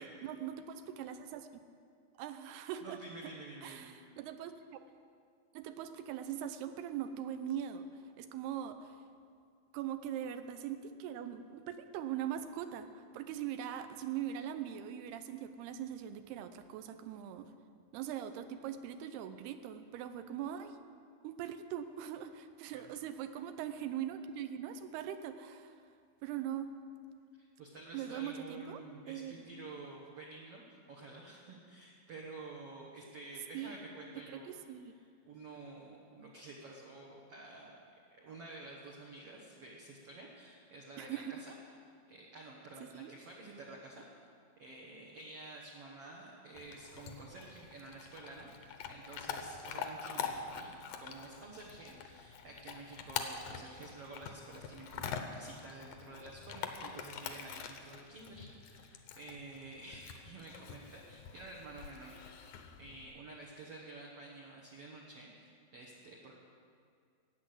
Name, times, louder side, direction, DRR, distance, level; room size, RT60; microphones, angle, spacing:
voice 1, 0.0-1.5 2.2-3.0 3.2-3.3 3.6-4.8 5.5-7.9 8.2-9.0 9.7-17.5 17.9-20.8 21.2-25.8 26.2-26.7 27.9-28.8 29.1-29.3 33.5-33.8 34.3-34.9 41.0-41.4 42.9-43.1, right 10 dB, 80° right, 10 dB, 2.7 m, -41 dB
voice 2, 2.8-3.9 22.7-23.0 27.4-34.5 34.8-34.9 35.3-37.8 38.1-41.5 42.1-44.0 44.6-62.5 62.8-66.3, right 2 dB, 60° right, -2 dB, 1.6 m, -50 dB
Chewing mastication / Dog, 46.5-63.1, left 7 dB, 80° left, 1.7 m, -45 dB
15.0 x 9.4 x 7.8 m, 2.3 s
omnidirectional pair, 4.7 m